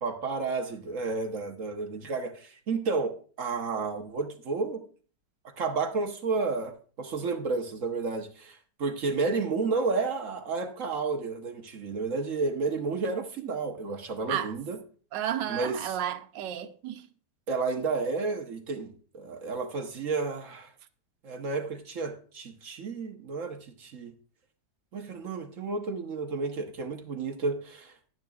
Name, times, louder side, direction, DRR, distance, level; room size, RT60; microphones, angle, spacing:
voice 1, 0.0-4.8 5.6-14.8 15.5-16.0 17.5-20.7 21.2-24.1 24.9-28.1, right 4 dB, 50° right, 1.3 m, -31 dB
voice 2, 15.1-17.0, right 10 dB, 90° right, 1.4 m, -32 dB
11.0 x 10.5 x 2.4 m
omnidirectional pair, 1.9 m